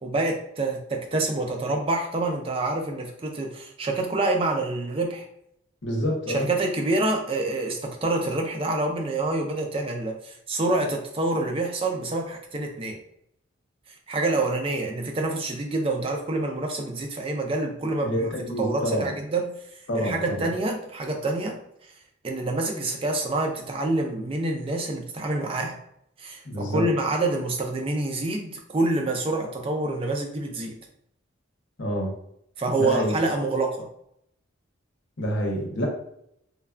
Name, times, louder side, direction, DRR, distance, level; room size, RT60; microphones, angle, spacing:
voice 1, 0.0-5.3 6.3-13.0 14.1-18.3 18.6-19.5 19.9-21.6 22.2-25.8 26.2-30.7 32.6-33.8, right 2 dB, 25° right, 2 dB, 0.4 m, -27 dB
voice 2, 5.8-6.5 18.0-19.1 19.9-20.5 26.4-26.9 31.8-32.1 32.8-33.2 35.2-35.9, equal, 60° left, 0 dB, 0.7 m, -27 dB
3.2 x 2.3 x 2.4 m, 0.73 s
head